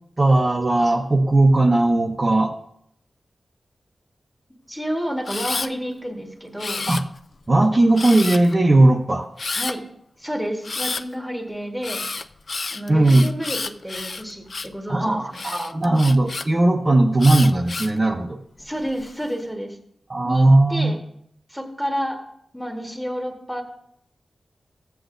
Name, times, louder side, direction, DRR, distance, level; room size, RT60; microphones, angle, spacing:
voice 1, 0.2-2.5 6.9-7.0 7.5-9.3 12.9-13.3 14.9-18.4 20.1-21.0, right 2 dB, 25° right, 0 dB, 0.7 m, -17 dB
voice 2, 4.7-6.8 9.5-9.8 10.2-12.0 12.7-13.6 13.8-15.2 18.6-19.8 20.2-21.0 21.5-22.2 22.5-23.6, equal, ahead, 2 dB, 1.3 m, -30 dB
Camera, 5.2-5.7 6.6-7.3 8.0-8.5 9.4-9.7 10.6-11.0 11.8-14.8 15.3-16.5 17.2-18.0 18.6-19.1, left 3 dB, 40° left, 0.4 m, -30 dB
15.0 x 8.1 x 2.6 m, 0.72 s
wide cardioid pair, 165°, 0 cm